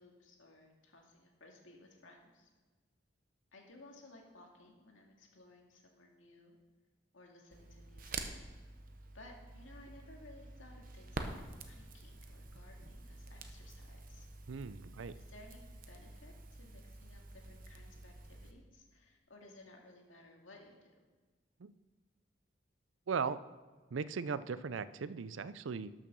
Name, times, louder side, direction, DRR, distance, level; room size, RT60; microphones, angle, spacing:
voice 1, 0.0-2.5 3.5-6.6 7.1-8.3 9.1-11.3 11.7-14.3 15.1-21.1, left 2 dB, 90° left, 1 dB, 2.2 m, -58 dB
Crackle, 7.5-18.5, right 3 dB, 45° right, 0.9 m, -48 dB
voice 2, 14.5-15.1 21.6-21.7 23.1-23.4 23.9-25.9, right 5 dB, 80° right, 15 dB, 0.5 m, -38 dB
12.0 x 6.5 x 6.1 m, 1.3 s
head